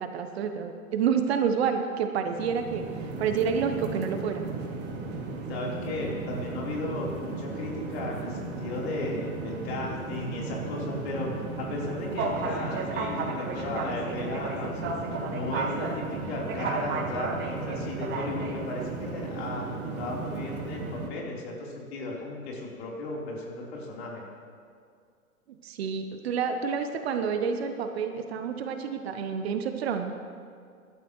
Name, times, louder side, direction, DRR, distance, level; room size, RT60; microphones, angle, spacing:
voice 1, 0.0-2.9 3.2-4.4 25.6-30.1, right 6 dB, 45° right, 7 dB, 1.1 m, -28 dB
sound 1, 2.3-21.1, right 3 dB, 25° right, 1.5 m, -34 dB
voice 2, 5.5-11.3 11.6-15.0 15.3-24.2, left 2 dB, 45° left, -3 dB, 4.0 m, -35 dB
24.5 x 13.0 x 3.1 m, 2.2 s
figure-of-eight pair, 115°, 43 cm